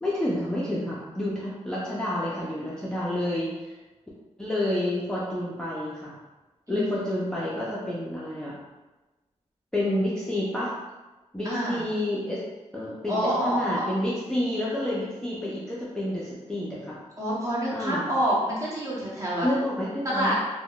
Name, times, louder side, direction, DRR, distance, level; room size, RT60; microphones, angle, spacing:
voice 1, 0.0-3.7 4.4-6.1 6.7-8.6 9.7-10.7 11.3-12.4 12.7-17.0 17.7-18.1 19.4-20.4, left 1 dB, 5° left, -7 dB, 0.4 m, -29 dB
voice 2, 11.4-11.8 13.1-13.9 17.2-19.5 20.0-20.4, equal, 25° right, -6 dB, 0.9 m, -27 dB
3.5 x 2.1 x 2.3 m, 1.1 s
wide cardioid pair, 135°, 12 cm